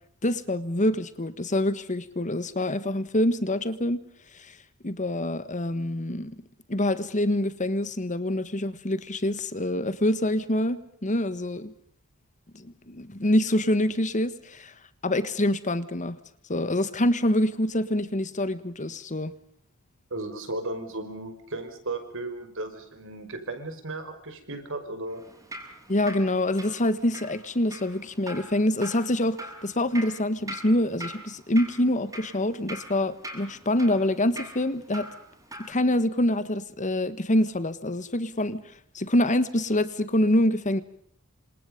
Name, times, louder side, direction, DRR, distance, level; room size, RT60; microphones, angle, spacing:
voice 1, 0.2-4.0 4.3-4.6 4.8-6.3 6.7-11.7 12.5-14.7 15.0-16.2 16.5-19.3 25.9-35.1 35.7-38.6 38.9-40.8, left 1 dB, 35° left, 1.5 m, -26 dB
voice 2, 20.1-25.2, right 2 dB, 60° right, 5.6 m, -35 dB
Drip, 25.1-35.7, right 1 dB, 15° right, 7.5 m, -43 dB
28.5 x 27.0 x 5.3 m
head